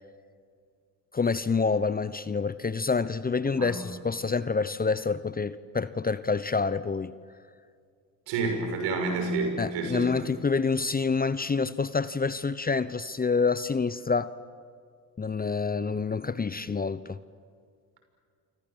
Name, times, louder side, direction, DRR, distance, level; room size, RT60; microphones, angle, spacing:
voice 1, 1.1-7.1 9.6-14.3 15.2-17.2, left 4 dB, 20° left, 16 dB, 0.9 m, -27 dB
voice 2, 3.5-3.8 8.3-10.3, right 3 dB, 70° right, 5 dB, 6.4 m, -29 dB
28.0 x 25.0 x 7.7 m, 2.1 s
hypercardioid pair, 55°, 45 cm